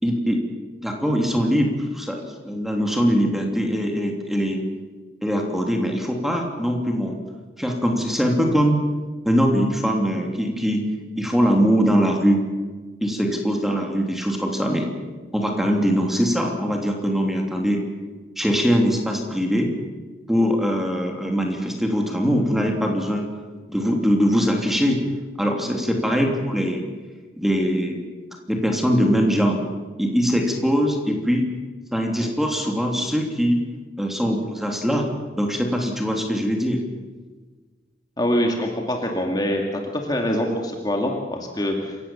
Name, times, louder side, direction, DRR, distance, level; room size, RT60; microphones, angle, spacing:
voice 1, 0.0-0.4 0.8-4.6 5.2-7.2 7.6-8.8 9.2-10.8 11.1-12.4 13.0-14.9 15.3-17.8 18.4-19.7 20.3-23.3 23.7-25.0 25.4-26.8 27.4-28.0 28.5-29.6 30.0-31.5 31.9-33.6 34.0-35.1 35.4-36.8, equal, ahead, 1 dB, 3.0 m, -22 dB
voice 2, 38.2-42.0, equal, 25° left, 2 dB, 2.4 m, -24 dB
27.5 x 16.5 x 7.3 m, 1.4 s
head